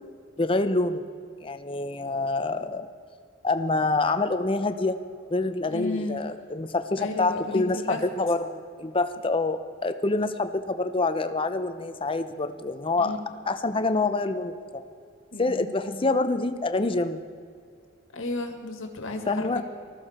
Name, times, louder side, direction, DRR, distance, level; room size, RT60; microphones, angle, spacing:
voice 1, 0.4-1.0 1.4-2.9 3.4-5.0 5.3-13.2 13.5-14.8 15.4-17.3 19.3-19.6, left 3 dB, 25° left, 9 dB, 0.7 m, -26 dB
voice 2, 5.6-6.2 7.0-8.1 13.0-13.2 15.3-15.7 18.1-19.6, left 2 dB, 70° left, 4 dB, 1.8 m, -33 dB
19.5 x 14.0 x 4.3 m, 2.3 s
head